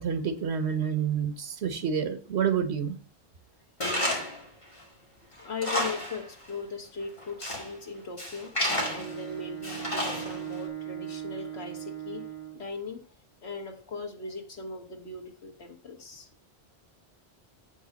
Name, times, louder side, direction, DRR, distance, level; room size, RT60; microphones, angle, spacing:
voice 1, 0.0-2.9, right 7 dB, 85° right, 1.3 m, -28 dB
Tools, 3.8-4.4 4.8-4.9 5.4-6.2 6.5-6.6 7.2-7.7 8.2-9.2 9.6-10.5, left 1 dB, 30° left, 2.2 m, -30 dB
voice 2, 5.4-13.1 13.4-16.3, left 4 dB, 85° left, 1.6 m, -39 dB
Bowed string instrument, 8.6-12.8, right 12 dB, 30° right, 2.3 m, -39 dB
7.7 x 5.5 x 5.2 m
omnidirectional pair, 1.1 m